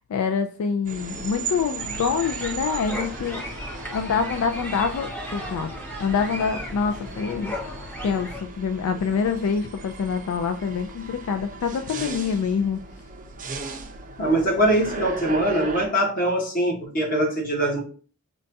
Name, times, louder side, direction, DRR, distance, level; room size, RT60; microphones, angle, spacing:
voice 1, 0.1-3.4 3.9-5.7 6.0-7.5 8.0-12.8, left 6 dB, 75° left, 8 dB, 0.3 m, -26 dB
on board a train S-Bahn Berlin, 0.8-15.9, right 4 dB, 35° right, 0.4 m, -37 dB
sound 1, 1.8-8.4, equal, 10° left, 0.6 m, -35 dB
voice 2, 14.2-17.8, right 1 dB, 40° left, 0 dB, 1.1 m, -22 dB
5.2 x 2.2 x 2.6 m, 0.40 s
head